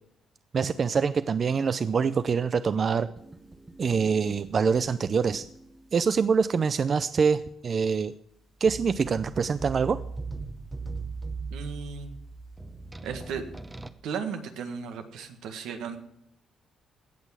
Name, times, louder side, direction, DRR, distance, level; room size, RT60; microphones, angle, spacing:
voice 1, 0.5-3.1 3.8-5.4 5.9-8.1 8.6-10.0, right 5 dB, 45° right, 14 dB, 0.5 m, -25 dB
sound 1, 3.2-6.1 8.7-13.9, right 3 dB, 15° right, 0.9 m, -40 dB
voice 2, 11.5-12.2 13.0-13.4 14.0-16.0, right 6 dB, 85° right, 7 dB, 1.7 m, -35 dB
17.0 x 6.2 x 7.4 m, 0.75 s
cardioid pair, 90°, 0 cm